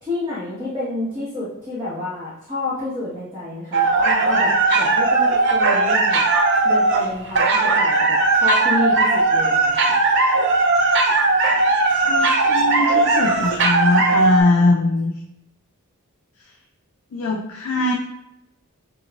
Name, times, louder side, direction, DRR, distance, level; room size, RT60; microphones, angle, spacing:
voice 1, 0.0-6.2 6.6-10.0 11.9-12.0, left 2 dB, 20° right, -10 dB, 1.1 m, -29 dB
sound 1, 3.7-14.4, right 3 dB, 55° right, 0.5 m, -18 dB
voice 2, 12.0-15.1 17.1-18.0, left 2 dB, 65° left, 1 dB, 0.4 m, -21 dB
5.9 x 2.3 x 2.3 m, 0.84 s
head